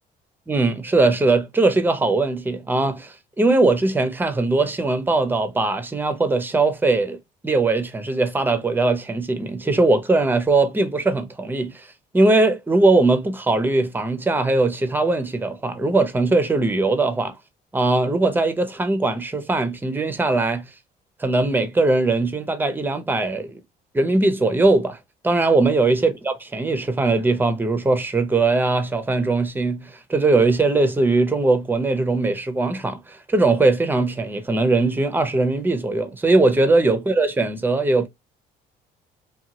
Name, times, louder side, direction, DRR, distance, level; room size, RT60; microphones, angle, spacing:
voice 1, 0.5-7.2 7.4-11.9 12.1-17.3 17.7-20.6 21.2-23.6 23.9-25.0 25.2-38.1, right 3 dB, 10° right, 0.5 m, -20 dB
2.8 x 2.2 x 2.7 m
cardioid pair, 110°, 17 cm